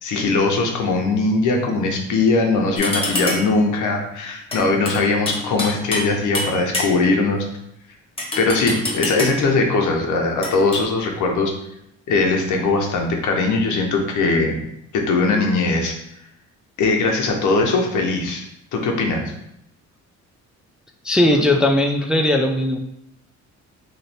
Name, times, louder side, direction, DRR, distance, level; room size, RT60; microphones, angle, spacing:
voice 1, 0.0-7.4 8.4-11.5 12.1-14.6 14.9-15.9 16.8-18.4 18.7-19.3, left 3 dB, 75° left, 2 dB, 0.9 m, -20 dB
sound 1, 2.8-3.6 4.5-6.1 6.3-7.2 8.2-9.5 10.4-10.8, left 2 dB, 20° left, 1.0 m, -26 dB
voice 2, 21.0-22.8, left 1 dB, 5° right, 2 dB, 0.4 m, -18 dB
3.1 x 2.6 x 4.1 m, 0.78 s
cardioid pair, 90°, 30 cm